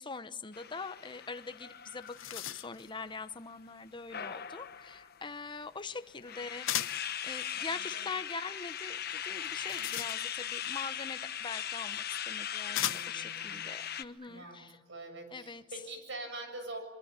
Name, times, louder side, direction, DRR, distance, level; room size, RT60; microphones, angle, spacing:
voice 1, 0.0-7.0 7.2-14.8 15.3-15.6, left 4 dB, 25° left, 11 dB, 0.9 m, -43 dB
sound 1, 0.5-3.2 4.1-5.2 5.9-6.0 6.2-14.0, left 9 dB, 55° left, 1.1 m, -39 dB
sound 2, 1.5-1.6 1.9-2.9 6.7-7.1 9.4-10.5 11.6-11.7 12.7-13.3, left 12 dB, 85° left, 0.8 m, -37 dB
voice 2, 7.5-8.1 9.8-10.1 12.7-13.7 14.3-14.6 14.9-16.8, right 2 dB, 65° right, 6 dB, 7.4 m, -45 dB
sound 3, 9.1-10.1 11.6-12.7 13.9-14.6, right 3 dB, 30° right, 4.3 m, -58 dB
24.5 x 24.0 x 9.7 m, 1.2 s
head